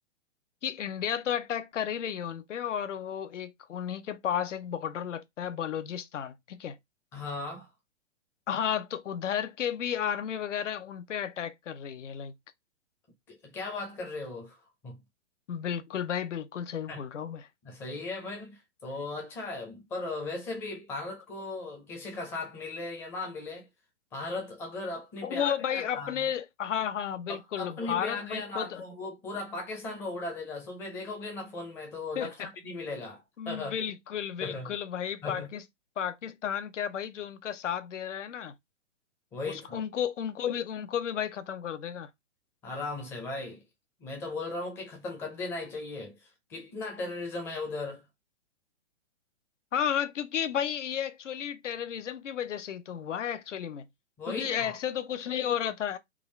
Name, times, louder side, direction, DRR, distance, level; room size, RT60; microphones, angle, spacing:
voice 1, 0.6-6.8 8.5-12.3 15.5-17.5 25.2-28.8 32.2-32.5 33.4-35.6 36.0-38.5 39.4-42.1 49.7-53.9 54.3-56.0, left 9 dB, 90° left, 0.7 m, -33 dB
voice 2, 7.1-7.7 13.3-14.6 14.8-15.0 16.9-17.0 17.6-23.7 24.1-26.3 27.3-33.8 34.4-34.7 35.2-35.5 39.3-39.8 42.6-43.6 44.0-48.1 54.2-54.8, left 3 dB, 5° left, 0.4 m, -37 dB
3.6 x 2.4 x 3.1 m
hypercardioid pair, 150°, 36 cm